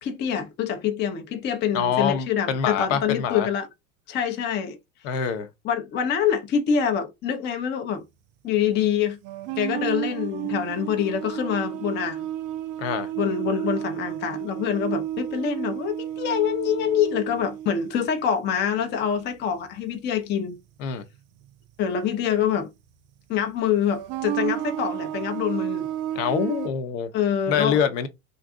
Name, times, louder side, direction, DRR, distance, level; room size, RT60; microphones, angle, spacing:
voice 1, 0.0-3.7 4.1-4.8 5.6-8.0 8.4-9.2 9.6-12.3 13.2-20.6 21.8-22.7 23.3-25.9 27.1-27.8, left 8 dB, 25° left, 0.5 m, -25 dB
voice 2, 1.7-3.5 5.0-5.5 12.8-13.1 20.8-21.0 26.1-27.1 27.5-28.1, left 7 dB, 60° left, 0.7 m, -25 dB
sound 1, 9.2-19.2 19.5-19.8 21.4-21.5 22.5-22.6 23.9-26.7, right 12 dB, 40° right, 0.4 m, -32 dB
2.6 x 2.2 x 3.5 m
hypercardioid pair, 85°, 43 cm